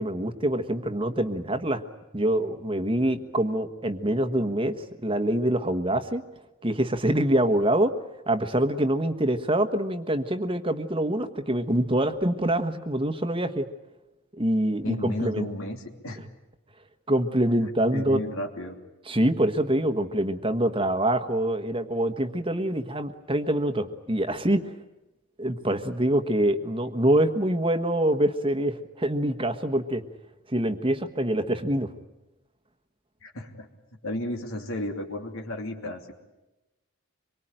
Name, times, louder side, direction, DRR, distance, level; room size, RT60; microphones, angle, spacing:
voice 1, 0.0-1.8 2.1-6.2 6.6-7.9 8.3-13.7 14.4-15.5 17.1-18.3 19.1-24.6 25.4-30.0 30.5-31.9, right 1 dB, 25° right, 8 dB, 1.3 m, -25 dB
voice 2, 14.8-16.2 17.4-18.8 33.2-33.7 34.0-36.1, left 1 dB, 65° left, 2 dB, 2.9 m, -33 dB
26.0 x 23.0 x 9.0 m, 1.0 s
head